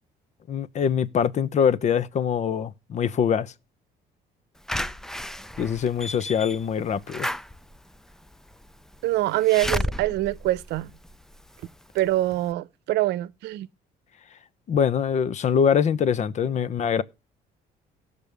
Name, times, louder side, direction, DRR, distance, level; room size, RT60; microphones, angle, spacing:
voice 1, 0.5-3.5 5.6-7.3 14.7-17.0, left 7 dB, 45° left, 0.8 m, -23 dB
Slam / Alarm, 4.7-11.5 12.0-12.1 12.3-12.4, left 1 dB, 5° left, 0.4 m, -33 dB
voice 2, 9.0-10.9 11.9-13.7, right 16 dB, 80° right, 0.7 m, -24 dB
18.0 x 6.8 x 3.4 m
cardioid pair, 110°, 17 cm